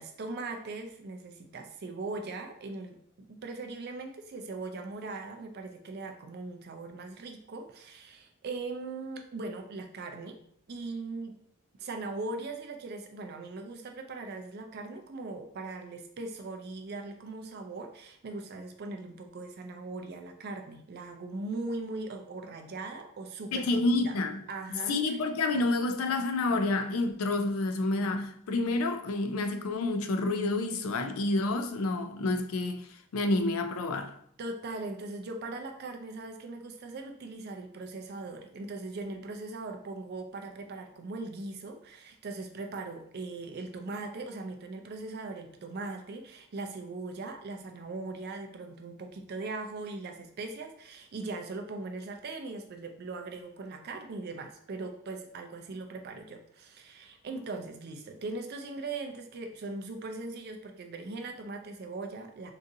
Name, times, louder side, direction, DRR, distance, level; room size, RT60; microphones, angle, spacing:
voice 1, 0.0-10.4 10.7-11.4 11.8-24.2 24.5-25.0 34.4-62.5, right 3 dB, 50° right, 0.4 m, -40 dB
voice 2, 23.5-24.4 24.9-34.1, left 2 dB, 75° left, 0.4 m, -29 dB
3.8 x 2.5 x 2.7 m
head